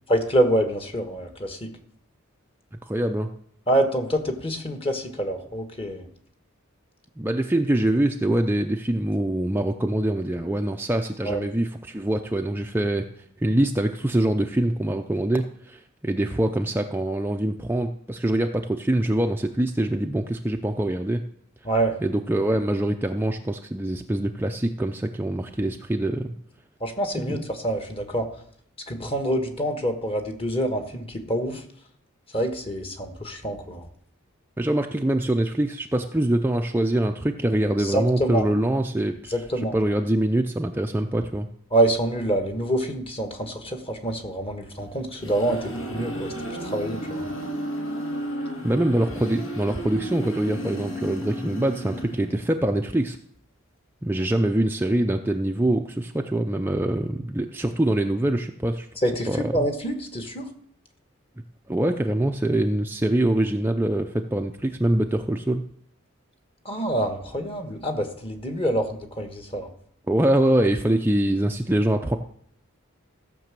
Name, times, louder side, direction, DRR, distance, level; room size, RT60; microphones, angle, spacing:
voice 1, 0.1-1.7 3.7-6.1 11.2-11.4 21.6-22.0 26.8-28.3 28.9-31.6 32.3-33.9 37.8-38.5 39.3-39.8 41.7-46.3 46.6-47.3 59.0-60.5 66.6-69.7, right 1 dB, 25° left, 6 dB, 1.5 m, -26 dB
voice 2, 2.8-3.3 7.2-13.1 13.4-21.2 22.0-26.3 27.2-27.5 34.6-39.3 39.7-41.5 48.6-53.2 54.0-58.9 59.3-59.5 61.7-65.6 70.1-72.2, right 1 dB, 10° right, 4 dB, 0.5 m, -24 dB
sound 1, 44.9-52.6, equal, 65° left, 2.4 m, -33 dB
15.0 x 6.1 x 7.5 m, 0.66 s
head